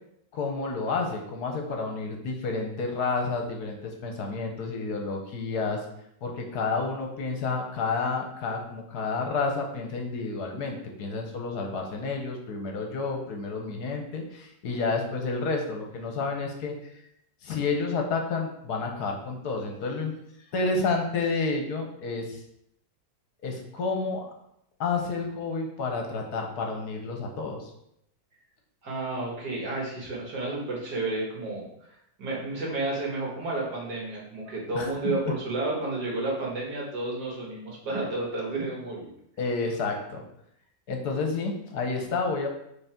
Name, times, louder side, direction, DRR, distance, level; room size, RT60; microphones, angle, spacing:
voice 1, 0.3-5.8 6.2-16.9 17.4-20.1 20.5-22.4 23.4-24.2 24.8-27.7 34.7-35.1 39.4-40.2 40.9-42.5, left 4 dB, 70° left, 2 dB, 1.4 m, -30 dB
voice 2, 28.8-31.7 32.2-39.1, right 2 dB, 65° right, -3 dB, 2.3 m, -31 dB
5.6 x 4.1 x 4.4 m, 0.76 s
omnidirectional pair, 1.8 m